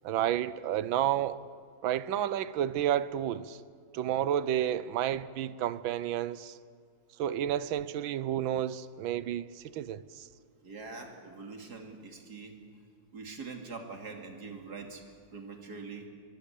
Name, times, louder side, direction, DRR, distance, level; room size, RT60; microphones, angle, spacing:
voice 1, 0.0-1.4 1.8-3.6 3.9-6.6 7.2-9.5 9.7-10.3, right 11 dB, 90° right, 1.6 m, -30 dB
voice 2, 10.6-12.6 13.1-15.0 15.3-16.1, right 4 dB, 55° right, 3.2 m, -43 dB
23.5 x 23.0 x 8.4 m
omnidirectional pair, 2.1 m